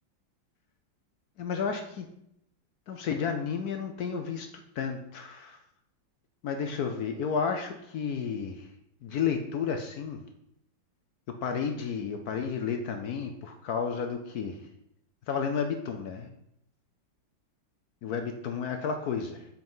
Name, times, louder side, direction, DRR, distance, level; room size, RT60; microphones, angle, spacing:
voice 1, 1.4-2.1 2.9-4.5 4.8-5.6 6.4-8.7 9.0-10.2 11.4-14.6 15.3-16.3 18.0-19.5, left 6 dB, 65° left, 6 dB, 1.0 m, -32 dB
7.7 x 4.5 x 5.4 m, 0.78 s
omnidirectional pair, 2.1 m